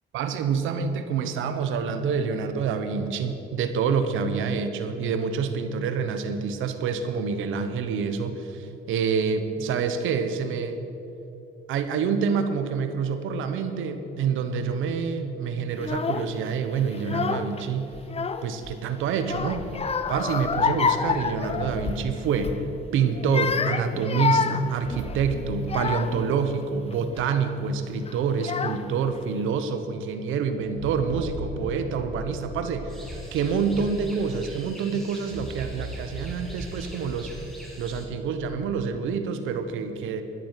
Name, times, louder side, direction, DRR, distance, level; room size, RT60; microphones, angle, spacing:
voice 1, 0.1-10.8 11.7-17.9 18.4-19.7 20.1-22.5 22.9-37.3 37.8-40.2, right 6 dB, 90° right, 8 dB, 1.1 m, -27 dB
Child speech kid speaking / Crying sobbing, 15.8-16.3 16.9-17.6 17.9-18.8 19.2-22.1 22.4-22.7 23.2-26.3 26.9-27.3 28.1-28.2 28.4-29.1, left 5 dB, 30° left, 0.6 m, -28 dB
sound 1, 19.1-22.7 24.5-26.7 27.0-27.1 28.0-28.1 28.6-28.7 30.3-34.5 35.2-38.6, right 1 dB, 50° right, 2.3 m, -40 dB
sound 2, 32.9-38.1, right 1 dB, ahead, 3.3 m, -46 dB
12.5 x 10.5 x 5.8 m, 3.0 s
cardioid pair, 90°, 20 cm